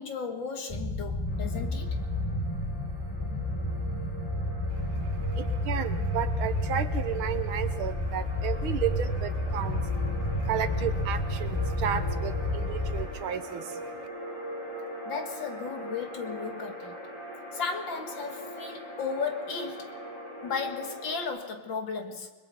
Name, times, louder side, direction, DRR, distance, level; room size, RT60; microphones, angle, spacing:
voice 1, 0.0-2.0 15.0-17.0 17.5-20.0 20.4-22.3, left 5 dB, 65° left, 2.3 m, -35 dB
sound 1, 0.7-13.1, left 1 dB, 15° left, 1.2 m, -30 dB
sound 2, 1.3-21.2, equal, 85° left, 6.0 m, -42 dB
voice 2, 4.8-10.0 10.2-14.1, right 9 dB, 75° right, 1.8 m, -33 dB
29.5 x 21.5 x 4.1 m
omnidirectional pair, 2.3 m